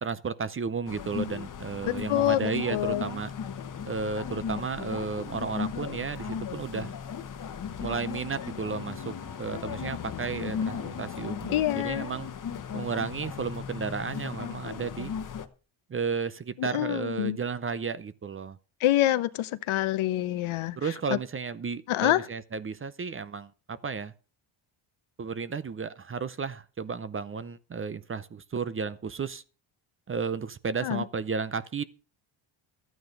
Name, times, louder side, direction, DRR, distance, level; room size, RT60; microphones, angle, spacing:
voice 1, 0.0-3.3 3.8-6.9 7.8-12.3 12.7-15.1 15.9-18.6 20.8-24.1 25.2-29.4 30.1-31.8, right 5 dB, 25° right, 0.6 m, -33 dB
sound 1, 0.9-15.5, left 7 dB, 40° left, 1.2 m, -36 dB
voice 2, 1.9-3.1 11.5-12.1 16.6-17.4 18.8-20.8 21.1-21.2 21.9-22.2 30.8-31.0, left 14 dB, 70° left, 1.0 m, -26 dB
13.5 x 9.3 x 5.3 m
cardioid pair, 120°, 50 cm